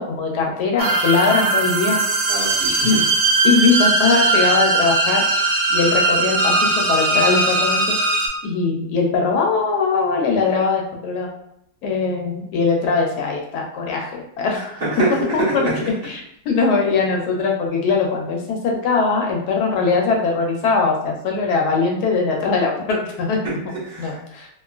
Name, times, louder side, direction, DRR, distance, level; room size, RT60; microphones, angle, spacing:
voice 1, 0.0-2.0 2.8-3.1 3.4-5.2 5.7-8.0 8.4-11.3 11.8-14.7 15.3-15.7 16.0-23.4 24.0-24.5, left 4 dB, 80° left, 0 dB, 1.1 m, -21 dB
sound 1, 0.8-8.3, right 2 dB, 85° right, 1.2 m, -19 dB
voice 2, 2.3-3.0 14.8-15.7 23.4-23.5 23.8-24.2, right 2 dB, 40° right, -9 dB, 1.3 m, -24 dB
2.9 x 2.4 x 2.4 m, 0.74 s
omnidirectional pair, 1.7 m